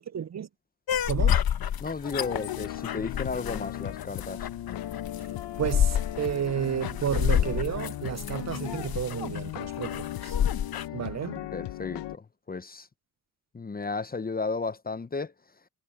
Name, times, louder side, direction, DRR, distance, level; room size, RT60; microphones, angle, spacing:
voice 1, 0.1-0.5 1.1-1.4 5.6-10.4 10.9-11.5, right 9 dB, 40° right, 0.6 m, -31 dB
sound 1, 0.9-10.9, left 9 dB, 60° left, 1.1 m, -29 dB
voice 2, 1.8-4.5 11.5-12.9 13.5-15.3, left 4 dB, 20° left, 0.7 m, -34 dB
sound 2, 2.1-12.2, left 13 dB, 80° left, 1.2 m, -37 dB
supercardioid pair, 60°, 41 cm